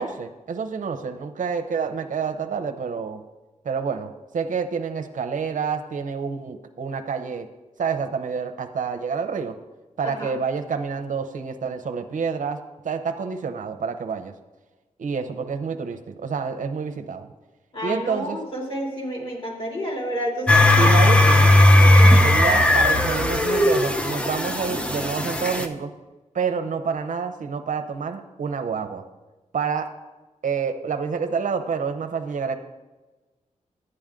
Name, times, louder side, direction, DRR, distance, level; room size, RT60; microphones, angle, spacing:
voice 1, 0.0-3.2 3.6-7.5 7.8-9.5 10.0-12.6 12.8-14.3 15.0-17.3 17.8-18.4 20.8-21.5 22.2-25.9 26.3-29.0 29.5-29.9 30.4-32.5, right 6 dB, 80° right, 6 dB, 0.8 m, -28 dB
voice 2, 10.0-10.4 17.7-21.3 21.8-22.4, equal, 45° left, -2 dB, 3.1 m, -30 dB
sound 1, 20.5-25.7, left 1 dB, 10° left, 0.7 m, -16 dB
11.0 x 8.9 x 3.7 m, 1.2 s
wide cardioid pair, 100°, 13 cm